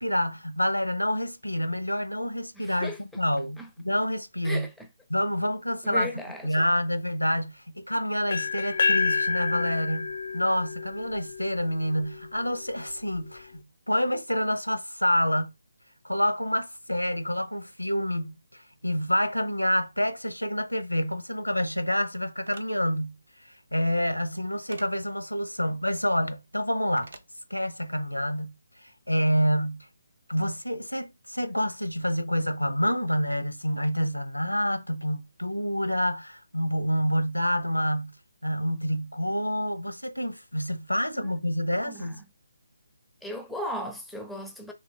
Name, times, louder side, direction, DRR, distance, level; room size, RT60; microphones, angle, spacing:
voice 1, 0.0-4.7 5.1-6.1 6.4-10.1 10.3-15.5 16.0-23.2 23.7-27.1 27.5-28.5 28.8-29.9 30.3-38.1 38.4-42.2, equal, 85° left, 0.6 m, -28 dB
voice 2, 2.6-3.0 3.6-3.7 4.4-4.7 5.8-6.5 41.1-41.3 41.8-42.1 43.2-44.7, equal, ahead, 0.5 m, -36 dB
sound 1, 8.3-12.2, left 4 dB, 50° left, 0.4 m, -29 dB
sound 2, 22.4-22.7 24.7-24.9 27.0-27.3, right 3 dB, 55° right, 0.6 m, -45 dB
3.5 x 2.9 x 2.7 m
figure-of-eight pair, 145°, 0 cm